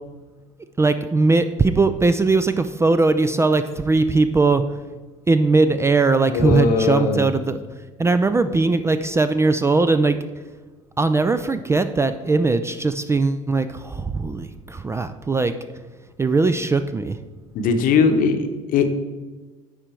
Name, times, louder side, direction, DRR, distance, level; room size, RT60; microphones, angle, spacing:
voice 1, 0.8-4.6 5.3-7.6 8.0-10.2 11.0-15.5 16.2-17.2, right 3 dB, 15° right, 11 dB, 0.3 m, -19 dB
voice 2, 6.3-7.3 17.5-18.9, left 5 dB, 50° left, 7 dB, 0.9 m, -19 dB
10.0 x 3.9 x 4.4 m, 1.3 s
hypercardioid pair, 65°, 17 cm